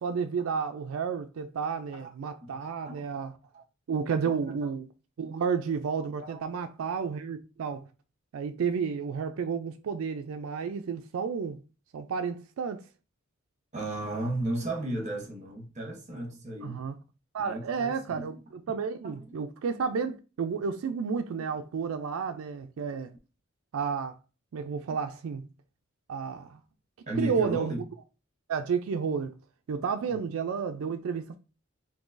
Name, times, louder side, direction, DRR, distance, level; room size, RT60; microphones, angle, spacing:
voice 1, 0.0-3.3 3.9-4.9 5.2-7.9 8.3-11.6 11.9-12.8 16.6-16.9 17.3-23.1 23.7-24.2 24.5-25.5 26.1-26.6 27.2-27.7 28.5-29.3 29.7-31.4, right 6 dB, 85° right, 0.4 m, -31 dB
voice 2, 2.4-3.1 3.5-3.6 4.2-4.3 4.6-4.7 6.2-6.4 13.7-16.8 17.4-18.4 19.0-19.4 27.1-27.8 30.1-30.2, right 1 dB, 35° right, 1.0 m, -35 dB
3.7 x 2.7 x 2.5 m
head